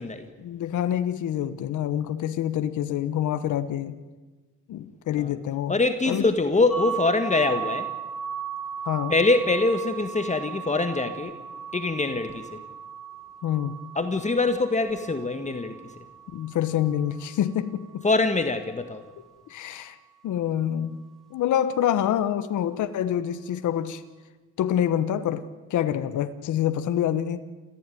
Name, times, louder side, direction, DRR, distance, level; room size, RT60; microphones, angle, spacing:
voice 1, 0.4-4.0 4.7-5.7 6.1-6.2 8.8-9.1 13.4-13.8 16.3-18.1 19.5-20.0 20.2-21.0 21.3-24.0 24.6-25.4 25.7-27.4, left 10 dB, 75° left, 11 dB, 1.2 m, -26 dB
voice 2, 5.7-7.9 9.1-11.3 11.7-12.6 14.0-15.8 18.0-19.0, left 3 dB, 25° left, 7 dB, 1.7 m, -24 dB
sound 1, 6.7-18.4, right 7 dB, ahead, 2.3 m, -37 dB
27.5 x 15.0 x 9.3 m, 1.3 s
cardioid pair, 90°, 30 cm